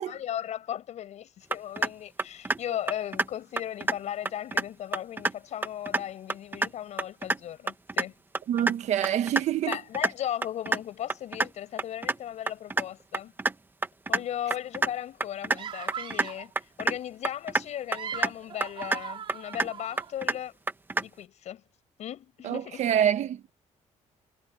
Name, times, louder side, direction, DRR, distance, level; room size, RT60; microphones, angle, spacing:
voice 1, 0.0-8.1 9.7-13.3 14.1-16.5 16.8-20.5 21.0-21.6 22.0-22.9, left 11 dB, 60° left, 6.9 m, -36 dB
sound 1, 1.5-1.9 2.2-2.6 2.9-3.3 3.6-4.0 4.3-4.6 4.9-5.3 5.6-6.0 6.3-6.7 7.0-7.4 7.7-8.1 8.4-8.7 9.0-9.4 9.7-10.1 10.4-10.8 11.1-11.5 11.8-12.2 12.5-12.8 13.1-13.5 13.8-14.2 14.5-14.9 15.2-15.6 15.9-16.3 16.6-17.0 17.2-17.7 17.9-18.3 18.6-19.0 19.3-19.7 20.0-20.4 20.7-21.0, right 3 dB, 15° right, 1.4 m, -27 dB
voice 2, 8.5-9.8 22.4-23.5, right 10 dB, 60° right, 1.5 m, -26 dB
sound 2, 15.6-16.5 17.7-20.1, right 8 dB, 40° right, 3.4 m, -40 dB
cardioid pair, 135°, 13 cm